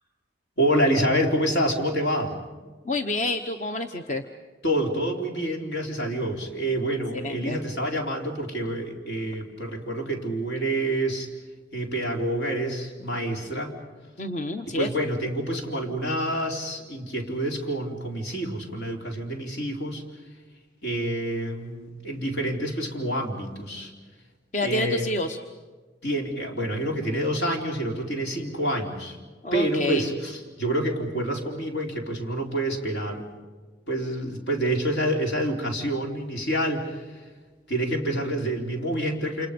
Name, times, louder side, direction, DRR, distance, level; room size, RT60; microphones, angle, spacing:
voice 1, 0.6-2.4 4.6-11.3 11.7-13.7 14.7-20.0 20.8-23.9 24.6-25.1 26.0-29.2 29.5-33.3 33.9-37.3 37.7-39.5, right 1 dB, 75° left, 1 dB, 4.2 m, -27 dB
voice 2, 2.8-4.2 7.1-7.6 14.2-14.9 24.5-25.4 29.4-30.1, left 2 dB, 40° left, 6 dB, 1.0 m, -28 dB
29.0 x 28.5 x 5.3 m, 1.4 s
head